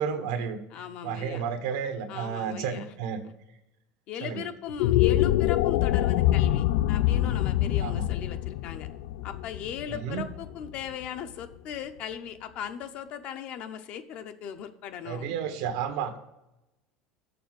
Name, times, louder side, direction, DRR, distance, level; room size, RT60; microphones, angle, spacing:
voice 1, 0.0-3.2 4.2-4.4 7.8-8.1 9.9-10.2 15.0-16.2, right 7 dB, 80° right, 7 dB, 1.3 m, -32 dB
voice 2, 0.7-1.4 2.1-2.9 4.1-8.9 9.2-15.4, left 8 dB, 45° left, 9 dB, 0.7 m, -38 dB
sound 1, 4.7-11.1, left 14 dB, 75° left, 0.4 m, -25 dB
6.8 x 6.8 x 7.6 m, 0.91 s
cardioid pair, 170°, 3 cm